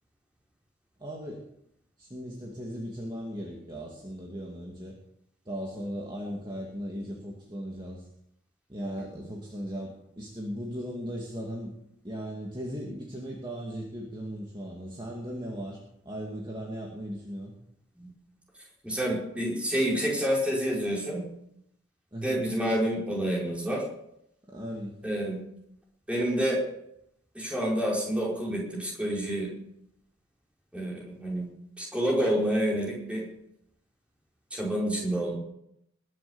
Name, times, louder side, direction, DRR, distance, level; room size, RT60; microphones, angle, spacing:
voice 1, 1.0-1.4 2.0-5.0 5.5-8.1 8.7-11.7 12.0-17.5 22.1-22.4 24.5-25.0, equal, 20° right, -2 dB, 2.2 m, -37 dB
voice 2, 18.8-21.2 22.2-23.8 25.0-25.4 26.1-26.6 27.3-29.5 30.7-31.5 31.8-33.3 34.5-35.3, equal, 5° right, -4 dB, 4.8 m, -28 dB
20.5 x 7.7 x 7.1 m, 0.77 s
head